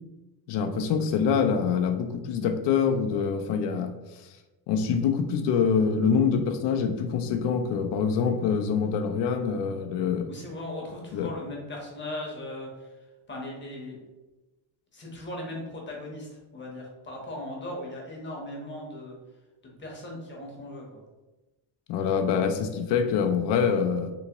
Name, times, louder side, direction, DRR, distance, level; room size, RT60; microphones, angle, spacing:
voice 1, 0.5-3.9 4.7-10.3 11.1-11.3 21.9-24.1, left 6 dB, 60° left, 7 dB, 0.5 m, -25 dB
voice 2, 10.3-14.0 14.9-19.2 19.6-21.0, left 1 dB, 25° left, -2 dB, 0.8 m, -38 dB
3.5 x 2.8 x 2.9 m, 1.1 s
cardioid pair, 145°, 49 cm